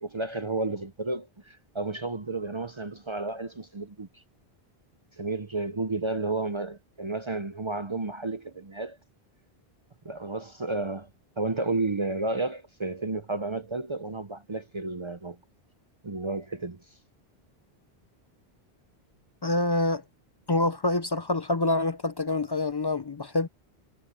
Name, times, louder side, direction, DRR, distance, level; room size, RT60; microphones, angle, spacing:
voice 1, 0.0-4.2 5.2-9.0 10.0-11.1 11.4-15.4 16.0-16.8, right 3 dB, 35° right, 0.6 m, -32 dB
voice 2, 19.4-20.0 20.5-23.5, left 2 dB, 35° left, 0.4 m, -26 dB
omnidirectional pair, 1.1 m